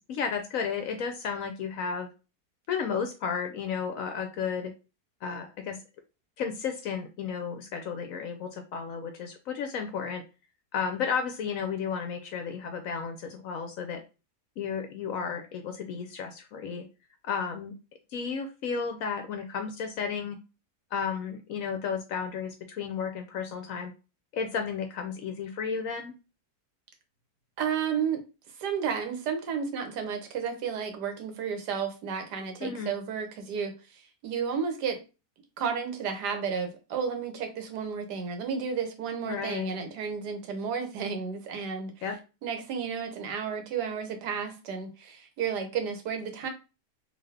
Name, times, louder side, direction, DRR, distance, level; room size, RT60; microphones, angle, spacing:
voice 1, 0.1-2.1 2.7-4.7 5.2-5.8 6.4-10.2 10.7-14.0 14.6-16.9 17.2-17.7 18.1-20.4 20.9-23.9 24.3-26.1 32.6-32.9 39.3-39.7 42.0-42.2, left 6 dB, 70° left, 0.9 m, -33 dB
voice 2, 27.6-28.2 28.6-35.0 35.6-41.9 42.4-46.5, right 6 dB, 80° right, 1.4 m, -32 dB
3.7 x 2.7 x 3.3 m
omnidirectional pair, 1.8 m